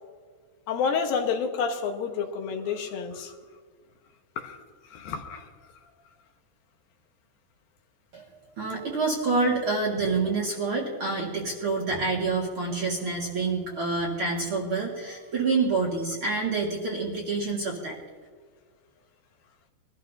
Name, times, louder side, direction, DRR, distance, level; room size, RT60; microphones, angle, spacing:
voice 1, 0.7-3.3 4.4-4.6 4.9-5.5, left 6 dB, 75° left, 4 dB, 2.8 m, -29 dB
voice 2, 8.6-18.0, right 3 dB, 45° right, -2 dB, 2.1 m, -27 dB
22.0 x 13.0 x 2.7 m, 1.5 s
omnidirectional pair, 4.4 m